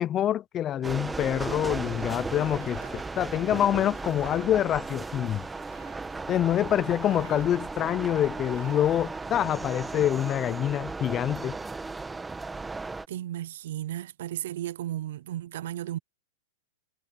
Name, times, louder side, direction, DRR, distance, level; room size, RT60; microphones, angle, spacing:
voice 1, 0.0-5.4 6.3-11.6, left 11 dB, 25° left, 0.7 m, -26 dB
sound 1, 0.8-13.1, right 3 dB, 10° right, 1.4 m, -36 dB
sound 2, 1.4-10.3, right 9 dB, 85° right, 3.3 m, -54 dB
voice 2, 13.1-16.0, right 12 dB, 65° right, 0.6 m, -34 dB
hypercardioid pair, 135°, 0 cm